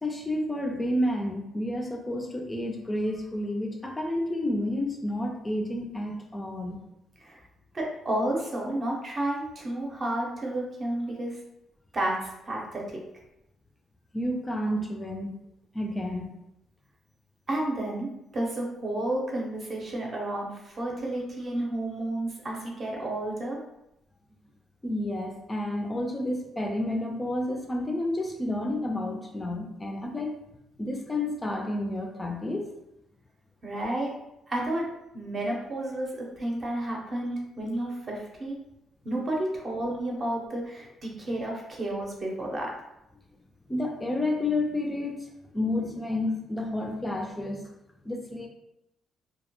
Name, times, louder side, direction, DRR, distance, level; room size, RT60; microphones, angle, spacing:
voice 1, 0.0-6.8 14.1-15.3 15.7-16.3 24.8-30.4 30.8-32.7 43.7-45.3 45.5-47.6 48.1-48.5, left 1 dB, 15° left, 1 dB, 0.3 m, -30 dB
voice 2, 7.7-11.4 11.9-12.9 17.5-23.6 33.6-34.1 34.5-34.9 35.1-38.6 39.0-42.7, right 1 dB, 40° right, -1 dB, 0.7 m, -31 dB
2.2 x 2.0 x 2.9 m, 0.86 s
cardioid pair, 90°, 0 cm